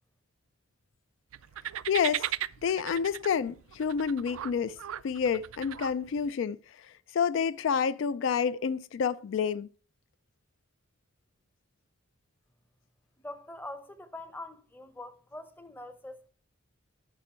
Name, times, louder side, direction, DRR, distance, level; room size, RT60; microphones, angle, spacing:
sound 1, 1.3-6.3, right 12 dB, 80° right, 0.4 m, -38 dB
voice 1, 1.9-2.3 2.6-4.8 5.0-6.6 7.1-9.7, left 6 dB, 65° left, 0.3 m, -28 dB
voice 2, 13.2-16.2, left 2 dB, 10° left, 0.7 m, -44 dB
11.0 x 5.9 x 4.3 m
head